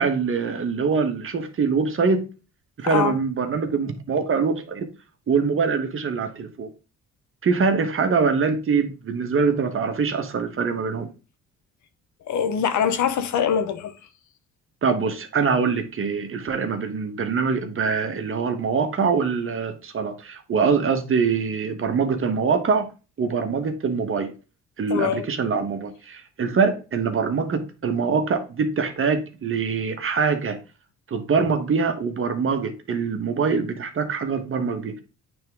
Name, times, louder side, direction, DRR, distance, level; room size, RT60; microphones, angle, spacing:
voice 1, 0.0-2.3 2.8-4.9 5.3-6.7 7.4-11.1 14.8-22.9 23.2-24.3 24.8-30.6 31.1-35.0, right 5 dB, 45° right, 1.2 m, -24 dB
voice 2, 2.8-3.1 12.3-13.9 24.9-25.3, left 8 dB, 75° left, 1.0 m, -23 dB
8.8 x 3.5 x 3.5 m
cardioid pair, 90°, 30 cm